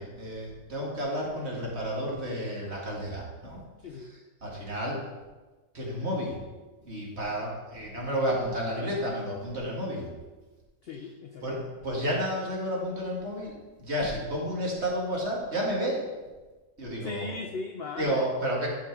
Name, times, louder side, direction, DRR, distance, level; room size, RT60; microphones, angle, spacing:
voice 1, 0.0-3.6 4.0-5.0 5.7-6.4 6.8-10.1 11.4-16.0 16.8-17.3 18.0-18.7, equal, 40° right, -3 dB, 2.2 m, -31 dB
voice 2, 10.8-11.4 17.0-18.3, left 4 dB, 70° left, 5 dB, 0.5 m, -37 dB
11.0 x 5.4 x 4.6 m, 1.3 s
omnidirectional pair, 1.7 m